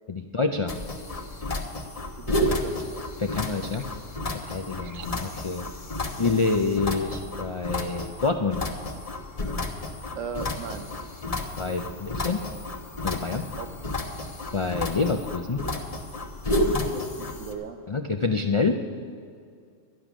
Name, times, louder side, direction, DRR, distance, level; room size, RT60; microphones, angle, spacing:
voice 1, 0.1-0.7 3.2-3.9 4.4-5.6 6.2-8.6 11.6-12.4 13.0-13.4 14.5-15.6 17.9-18.8, left 4 dB, 55° left, 5 dB, 0.3 m, -27 dB
sound 1, 0.7-17.5, left 1 dB, 30° left, 1.0 m, -31 dB
voice 2, 2.2-3.1 3.3-3.4 4.4-5.1 10.1-10.9 13.6-13.9 16.5-17.8, right 6 dB, 80° right, 8 dB, 1.2 m, -38 dB
12.0 x 11.0 x 6.1 m, 2.3 s
omnidirectional pair, 1.3 m